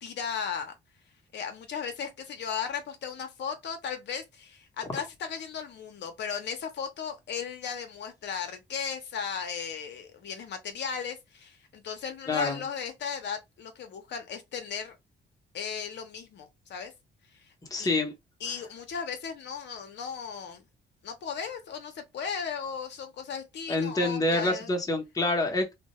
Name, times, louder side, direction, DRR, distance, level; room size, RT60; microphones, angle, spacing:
voice 1, 0.0-0.7 1.3-15.0 15.5-16.9 17.3-17.5 17.8-17.9 18.4-20.6 21.0-24.7, left 6 dB, 60° left, 0.6 m, -36 dB
voice 2, 12.3-12.6 17.7-18.1 23.7-25.7, left 2 dB, 15° left, 0.7 m, -27 dB
2.2 x 2.0 x 2.8 m
cardioid pair, 90°, 20 cm